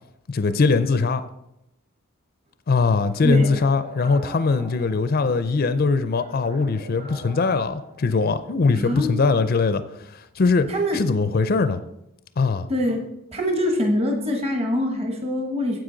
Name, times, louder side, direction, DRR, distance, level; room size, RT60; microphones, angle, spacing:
voice 1, 0.3-1.2 2.7-9.8 10.1-10.7 10.9-11.8 12.4-12.7, left 4 dB, 40° left, 11 dB, 0.4 m, -21 dB
sound 1, 3.1-5.5 6.1-8.5, right 1 dB, 40° right, 2.9 m, -43 dB
voice 2, 8.8-9.1 10.7-11.0 12.7-13.0 13.3-15.8, left 1 dB, 25° right, 2 dB, 1.1 m, -24 dB
9.7 x 7.8 x 3.8 m, 0.84 s
head